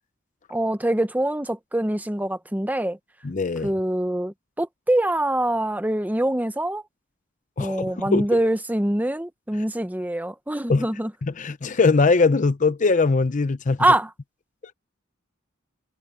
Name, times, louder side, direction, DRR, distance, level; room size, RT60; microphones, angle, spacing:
voice 1, 0.5-3.0 3.6-6.8 7.6-11.1 13.8-14.1, right 1 dB, 10° right, 1.0 m, -24 dB
voice 2, 3.2-3.7 7.6-8.3 10.7-10.9 11.2-13.8, left 4 dB, 40° left, 0.6 m, -21 dB
head